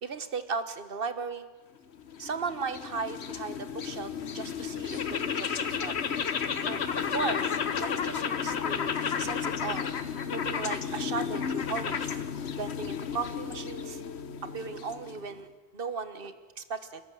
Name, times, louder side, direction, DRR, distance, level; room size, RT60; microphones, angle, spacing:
voice 1, 0.0-1.5 2.2-5.9 6.7-8.9 9.2-9.9 10.3-12.2 12.5-14.0 14.5-15.5 15.7-17.0, right 5 dB, 60° right, 12 dB, 1.5 m, -36 dB
sound 1, 1.9-15.4, left 7 dB, 80° left, 1.3 m, -32 dB
30.0 x 13.5 x 7.6 m, 1.3 s
omnidirectional pair, 1.1 m